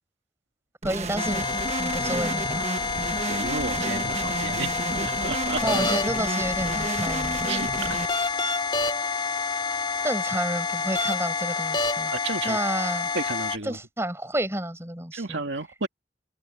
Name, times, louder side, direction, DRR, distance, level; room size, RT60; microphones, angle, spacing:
voice 1, 0.8-1.4 1.8-2.6 5.6-7.4 10.0-12.1 12.4-13.1 13.6-15.4, right 1 dB, 15° right, 8.0 m, -30 dB
sound 1, 0.8-8.1, right 2 dB, 35° right, 1.3 m, -31 dB
sound 2, 1.2-13.6, left 4 dB, 25° left, 2.6 m, -28 dB
voice 2, 3.3-5.6 7.5-8.0 12.1-12.6 13.1-13.8 15.1-15.9, right 3 dB, 85° right, 2.2 m, -32 dB
open air
head